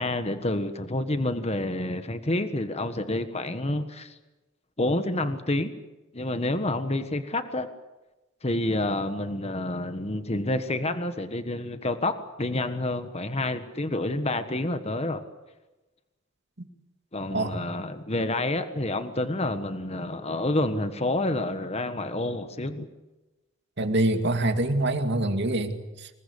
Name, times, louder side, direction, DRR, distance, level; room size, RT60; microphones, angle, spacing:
voice 1, 0.0-4.2 4.8-5.7 6.1-7.7 8.4-15.2 17.1-22.9, left 2 dB, 30° left, 9 dB, 1.5 m, -28 dB
voice 2, 23.8-26.1, right 1 dB, 60° right, 6 dB, 2.6 m, -25 dB
27.0 x 21.0 x 8.3 m, 1.1 s
head